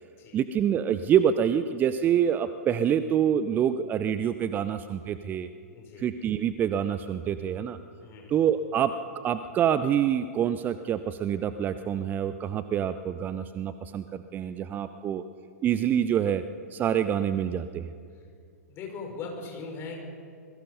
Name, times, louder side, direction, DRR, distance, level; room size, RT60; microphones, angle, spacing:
voice 1, 0.3-5.5 6.0-7.8 8.3-8.9 9.2-15.2 15.6-16.4 16.7-17.9, right 9 dB, 20° right, 12 dB, 0.6 m, -26 dB
voice 2, 5.7-6.1 8.0-8.3 18.7-20.0, left 4 dB, 25° left, 1 dB, 5.4 m, -39 dB
26.5 x 21.5 x 5.5 m, 2.3 s
figure-of-eight pair, 105°, 9 cm